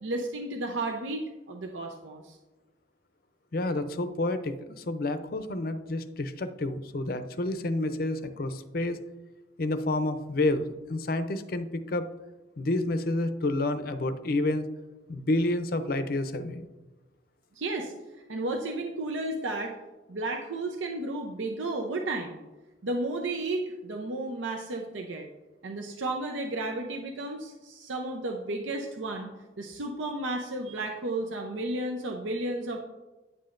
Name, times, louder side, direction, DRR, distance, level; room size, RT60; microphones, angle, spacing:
voice 1, 0.0-2.4 17.6-17.9 18.3-19.8 20.1-22.4 22.8-25.3 25.6-29.3 29.6-32.8, right 2 dB, 85° right, 2 dB, 0.7 m, -33 dB
voice 2, 3.5-9.0 9.6-12.1 12.6-14.7 15.1-16.6, left 2 dB, 50° left, 10 dB, 0.5 m, -29 dB
9.6 x 7.6 x 2.5 m, 1.1 s
head